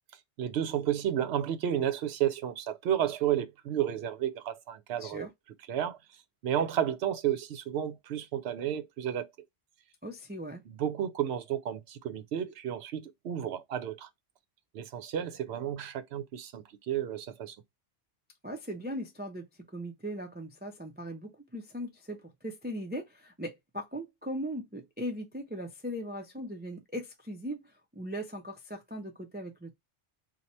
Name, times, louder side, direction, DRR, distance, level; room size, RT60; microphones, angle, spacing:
voice 1, 0.4-5.3 5.7-6.0 6.4-9.3 10.7-14.1 14.7-17.6, right 10 dB, 70° right, 0.8 m, -32 dB
voice 2, 10.0-10.6 18.4-19.5 19.7-27.6 27.9-29.7, equal, 15° right, 0.3 m, -39 dB
2.8 x 2.3 x 4.1 m
omnidirectional pair, 1.1 m